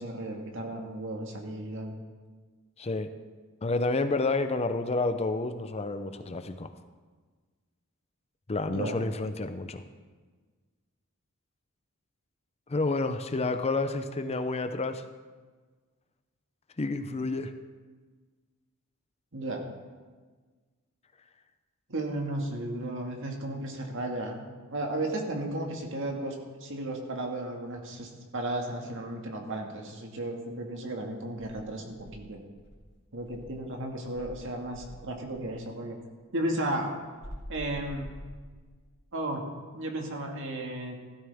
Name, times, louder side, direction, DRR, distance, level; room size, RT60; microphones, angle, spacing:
voice 1, 0.0-1.9 8.7-9.0 19.3-19.6 21.9-24.4 24.7-32.4 33.1-36.0 36.3-37.0 37.5-38.1 39.1-39.4 39.7-41.0, right 1 dB, 60° right, 2 dB, 1.9 m, -34 dB
voice 2, 2.8-3.1 3.6-6.7 8.5-9.8 12.7-15.0 16.8-17.5, left 3 dB, 30° left, 9 dB, 0.6 m, -29 dB
Insect, 31.4-33.7 34.1-35.6 37.2-38.9, equal, 70° left, 3.2 m, -46 dB
16.0 x 12.5 x 3.5 m, 1.4 s
head